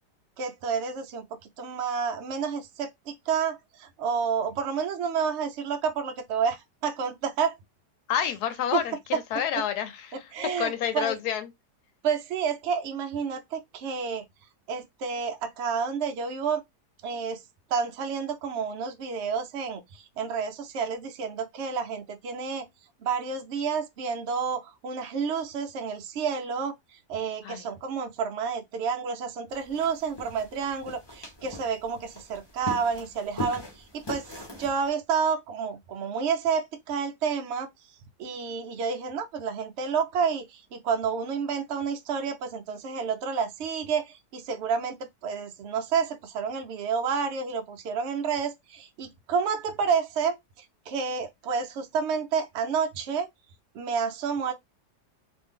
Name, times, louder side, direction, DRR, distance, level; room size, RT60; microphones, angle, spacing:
voice 1, 0.4-1.3 1.6-7.6 8.7-8.8 10.3-11.1 12.0-14.2 14.7-16.6 17.0-17.4 17.7-22.7 23.0-26.7 27.1-34.3 34.6-37.7 38.2-45.0 45.2-53.3 53.7-54.5, right 6 dB, 85° right, 0.6 m, -30 dB
voice 2, 8.1-10.3 10.6-11.5 27.4-27.7, left 9 dB, 75° left, 1.1 m, -29 dB
sound 1, 29.5-34.9, left 2 dB, 25° left, 0.6 m, -40 dB
2.6 x 2.5 x 3.5 m
omnidirectional pair, 1.8 m